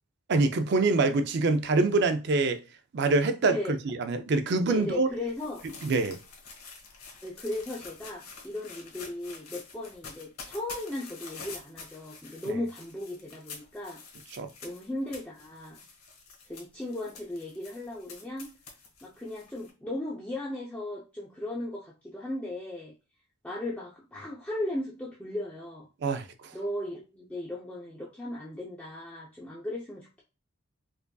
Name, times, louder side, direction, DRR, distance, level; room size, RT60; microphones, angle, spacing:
voice 1, 0.3-2.6 2.9-5.1 5.8-6.2 12.5-12.6 14.3-14.5 26.0-26.3, right 3 dB, 50° right, 0.4 m, -25 dB
sound 1, 4.7-19.7, left 4 dB, 85° left, 1.3 m, -47 dB
voice 2, 4.7-5.7 7.2-14.0 14.6-15.8 16.5-18.5 19.0-22.9 23.4-25.9 26.5-30.2, left 1 dB, 5° left, 0.5 m, -36 dB
4.8 x 2.5 x 2.3 m
head